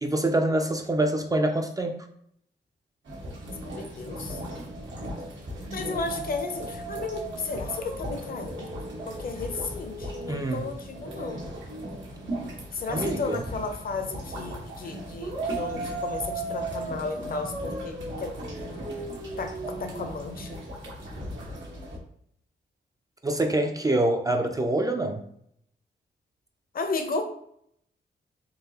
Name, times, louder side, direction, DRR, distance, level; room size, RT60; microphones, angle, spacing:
voice 1, 0.0-2.1 10.3-10.7 12.9-13.4 23.2-25.2, right 1 dB, 20° right, 4 dB, 0.3 m, -25 dB
sound 1, 3.0-22.0, right 1 dB, 90° right, 1.4 m, -36 dB
voice 2, 3.6-4.4 5.7-8.7 9.1-11.5 12.7-18.3 19.4-20.6 26.7-27.3, left 4 dB, 50° left, 6 dB, 0.6 m, -34 dB
3.8 x 3.2 x 2.8 m, 0.69 s
wide cardioid pair, 165°, 19 cm